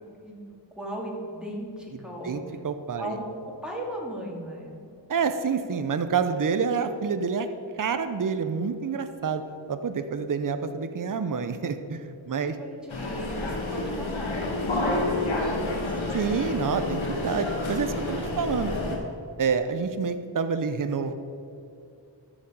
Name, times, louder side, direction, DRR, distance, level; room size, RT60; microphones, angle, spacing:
voice 1, 0.8-2.4 3.0-4.8 12.4-14.3 14.8-16.1, right 1 dB, ahead, -3 dB, 2.5 m, -37 dB
voice 2, 2.2-3.1 5.1-7.5 7.8-9.4 9.7-12.5 16.1-19.0 19.4-21.1, right 5 dB, 45° right, 9 dB, 0.7 m, -28 dB
sound 1, 12.9-19.0, left 2 dB, 90° left, 1.4 m, -29 dB
13.5 x 5.2 x 5.3 m, 2.6 s
cardioid pair, 45°, 45 cm